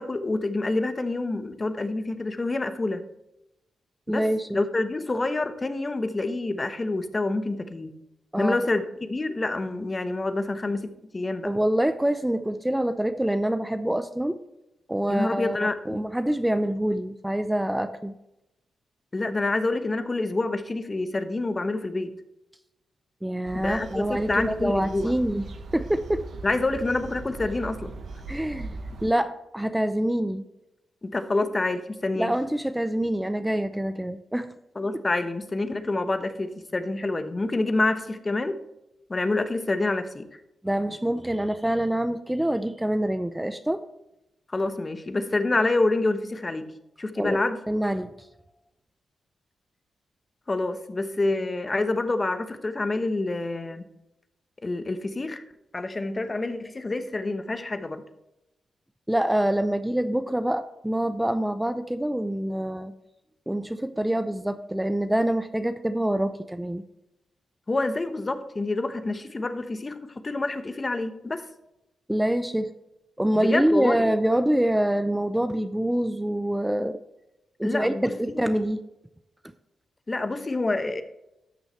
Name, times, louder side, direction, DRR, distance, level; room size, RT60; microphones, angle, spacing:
voice 1, 0.0-3.0 4.1-4.3 4.5-7.9 8.4-10.9 11.1-11.5 15.1-16.1 19.1-22.1 23.5-25.2 26.4-27.9 31.0-32.3 34.8-38.6 39.1-40.3 44.5-46.7 47.0-47.6 50.5-53.8 54.6-55.4 55.7-58.0 67.7-71.5 73.3-74.0 77.6-78.5 80.1-81.0, left 2 dB, 30° left, 10 dB, 1.0 m, -27 dB
voice 2, 4.1-4.6 8.3-8.6 11.4-14.4 14.9-15.6 15.9-18.1 23.2-25.5 25.7-26.2 28.3-30.4 32.2-34.5 40.6-43.8 47.2-47.4 47.7-48.1 59.1-62.9 63.5-66.8 72.1-72.7 73.2-77.0 77.6-78.8, right 1 dB, 10° right, 10 dB, 0.6 m, -25 dB
sound 1, 23.4-29.1, right 3 dB, 65° right, 1.2 m, -39 dB
13.0 x 6.3 x 3.2 m, 0.91 s
cardioid pair, 60°, 0 cm